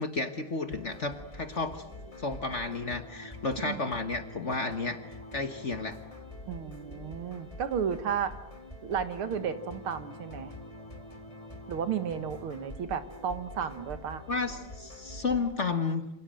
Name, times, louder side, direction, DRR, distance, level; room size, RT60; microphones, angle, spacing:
voice 1, 0.0-1.8 2.2-5.0 5.3-6.0 14.3-16.0, left 3 dB, 35° left, 8 dB, 1.5 m, -32 dB
sound 1, 0.7-15.5, left 1 dB, 15° left, 3.2 m, -46 dB
voice 2, 6.5-8.4 8.8-10.5 11.7-14.2, right 7 dB, 75° right, 10 dB, 2.3 m, -33 dB
28.0 x 27.5 x 7.7 m, 0.85 s
omnidirectional pair, 2.4 m